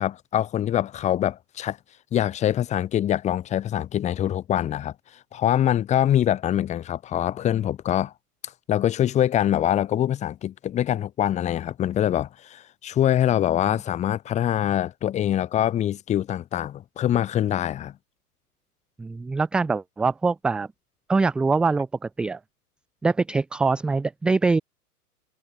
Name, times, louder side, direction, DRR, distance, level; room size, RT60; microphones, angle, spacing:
voice 1, 0.0-1.8 2.1-4.9 5.3-8.1 8.7-17.9, left 11 dB, 15° left, 0.9 m, -24 dB
voice 2, 19.0-20.7 21.1-21.9 22.2-22.4 23.0-24.6, right 4 dB, ahead, 0.4 m, -23 dB
hypercardioid pair, 120°, 46 cm